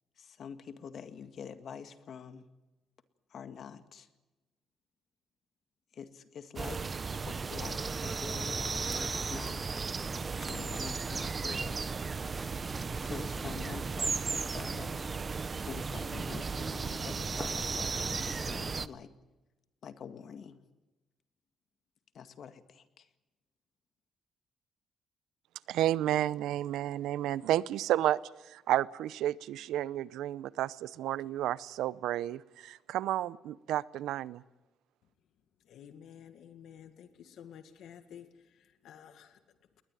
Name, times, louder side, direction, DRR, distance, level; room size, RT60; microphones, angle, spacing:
voice 1, 0.2-2.5 3.3-4.1 5.9-9.6 10.4-11.8 13.0-15.1 15.6-19.1 19.8-20.6 22.1-23.1, left 7 dB, 60° left, 10 dB, 1.9 m, -46 dB
sound 1, 6.6-18.9, right 4 dB, 35° right, 0.9 m, -35 dB
sound 2, 8.2-14.5, right 2 dB, 20° right, 1.4 m, -52 dB
voice 2, 25.7-28.2 28.5-34.4, right 13 dB, 85° right, 19 dB, 0.7 m, -31 dB
voice 3, 35.6-39.8, left 9 dB, 75° left, 9 dB, 1.9 m, -52 dB
20.5 x 20.0 x 9.1 m, 1.1 s
cardioid pair, 90°, 0 cm